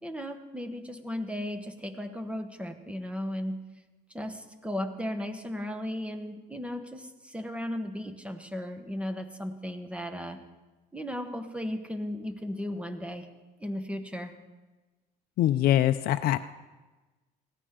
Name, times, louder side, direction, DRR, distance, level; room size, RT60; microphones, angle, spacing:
voice 1, 0.0-3.6 4.1-10.4 10.9-13.3 13.6-14.4, left 1 dB, 5° right, 8 dB, 1.2 m, -35 dB
voice 2, 15.4-16.4, left 13 dB, 65° left, 9 dB, 0.4 m, -23 dB
17.5 x 14.0 x 3.8 m, 1.2 s
cardioid pair, 110°, 17 cm